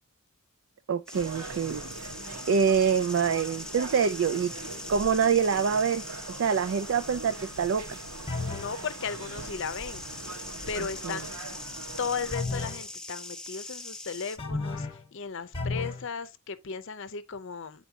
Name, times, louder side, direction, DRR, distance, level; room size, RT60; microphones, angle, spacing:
voice 1, 0.9-1.8 2.5-4.5 4.9-6.0 6.4-8.0 10.8-11.2, right 6 dB, 60° right, 0.4 m, -25 dB
sound 1, 1.1-14.4, left 2 dB, 5° left, 0.4 m, -42 dB
sound 2, 1.1-12.3, right 3 dB, 80° right, 1.2 m, -42 dB
voice 2, 4.7-5.1 8.5-10.4 10.7-11.4 12.0-17.8, left 5 dB, 55° left, 0.6 m, -36 dB
sound 3, 8.3-8.8 12.3-12.9 14.4-15.0 15.5-16.1, left 3 dB, 25° left, 1.1 m, -33 dB
9.2 x 4.3 x 2.8 m
head